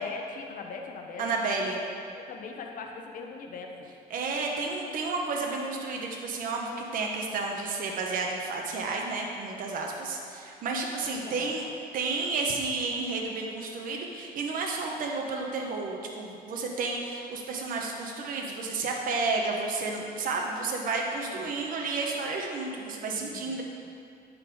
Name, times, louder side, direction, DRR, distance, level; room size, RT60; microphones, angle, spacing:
voice 1, 0.0-1.8 2.1-3.7 11.1-11.5 21.3-21.5 23.1-23.6, left 4 dB, 55° left, 2 dB, 0.8 m, -41 dB
voice 2, 1.2-1.8 4.1-11.6 11.9-23.6, right 3 dB, 55° right, 0 dB, 0.9 m, -31 dB
9.4 x 3.9 x 4.6 m, 2.5 s
cardioid pair, 110°, 17 cm